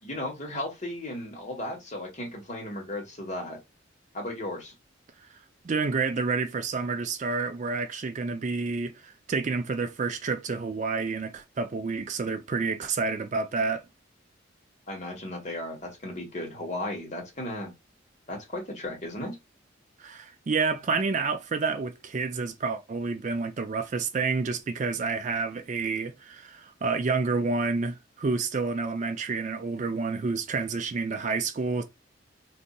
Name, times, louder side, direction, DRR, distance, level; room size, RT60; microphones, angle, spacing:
voice 1, 0.0-3.6 4.1-4.7 14.9-17.7 18.3-19.4, left 1 dB, 35° left, 1.3 m, -35 dB
voice 2, 5.6-13.8 20.0-31.8, right 4 dB, 40° right, 0.4 m, -29 dB
4.0 x 2.6 x 2.3 m
head